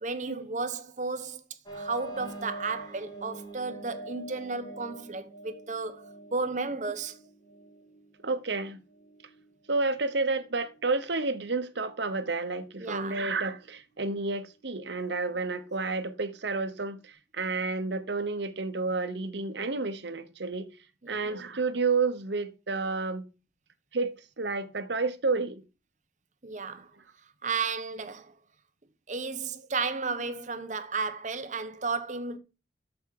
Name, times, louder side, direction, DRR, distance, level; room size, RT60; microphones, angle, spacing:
voice 1, 0.0-1.4 1.7-7.2 12.8-13.2 21.0-21.2 26.4-26.9 27.4-28.3 29.1-32.4, right 4 dB, 40° right, 0.9 m, -33 dB
sound 1, 1.6-17.1, right 2 dB, 25° left, 2.5 m, -48 dB
voice 2, 8.2-8.8 9.7-20.7 21.1-23.3 23.9-25.6, right 3 dB, 70° right, 1.0 m, -30 dB
8.9 x 7.0 x 4.8 m
head